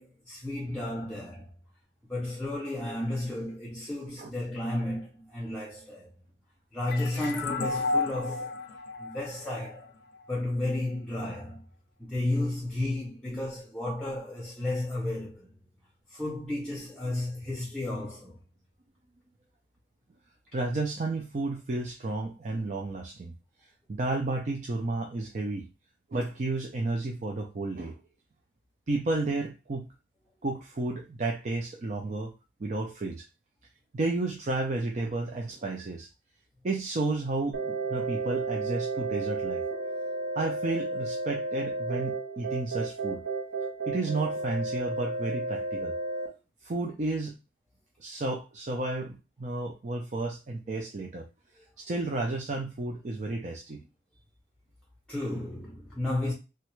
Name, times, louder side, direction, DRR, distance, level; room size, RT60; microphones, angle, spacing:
voice 1, 0.0-1.5 2.1-6.1 6.7-8.5 9.0-9.9 10.3-11.6 12.0-15.5 16.1-18.4 55.1-56.3, left 1 dB, 5° left, 0.6 m, -33 dB
sound 1, 6.9-10.3, left 3 dB, 60° left, 0.5 m, -32 dB
voice 2, 20.5-23.3 23.9-25.7 26.1-28.0 28.9-29.9 30.4-32.3 32.6-33.3 33.9-36.1 36.6-39.6 40.4-43.2 43.9-45.9 46.6-47.4 48.0-51.3 51.8-53.9, right 2 dB, 40° right, 0.4 m, -32 dB
sound 2, 37.5-46.3, right 3 dB, 55° right, 0.9 m, -32 dB
3.2 x 2.4 x 3.0 m
head